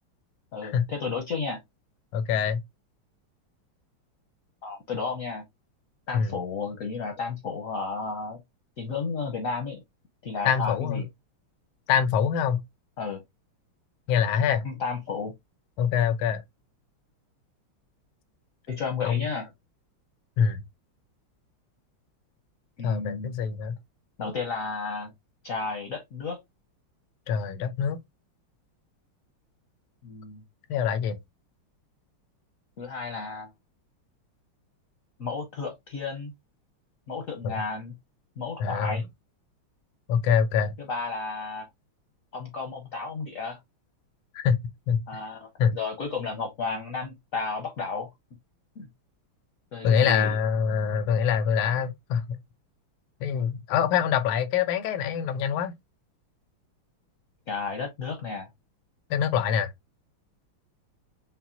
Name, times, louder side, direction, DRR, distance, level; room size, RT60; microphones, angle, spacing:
voice 1, 0.5-1.6 4.6-5.4 6.1-8.4 8.8-9.8 10.2-11.1 13.0-13.2 14.6-15.3 18.7-19.5 22.8-23.3 24.2-25.1 25.4-26.4 30.0-30.4 32.8-33.5 35.2-36.3 37.1-37.9 38.4-39.1 40.9-41.7 42.3-43.6 45.1-48.1 48.8-48.9 49.7-50.4 57.5-58.5, left 4 dB, 60° left, 0.9 m, -33 dB
voice 2, 2.1-2.6 6.1-6.3 10.4-11.0 11.9-12.6 14.1-14.6 15.8-16.4 19.0-19.3 20.4-20.6 22.8-23.7 27.3-28.0 30.7-31.2 37.4-37.5 38.6-39.0 40.1-40.7 44.3-44.6 44.9-45.0 45.6-45.7 49.8-52.4 53.2-55.7 59.1-59.7, left 7 dB, 80° left, 1.5 m, -24 dB
5.8 x 2.2 x 2.6 m
omnidirectional pair, 2.4 m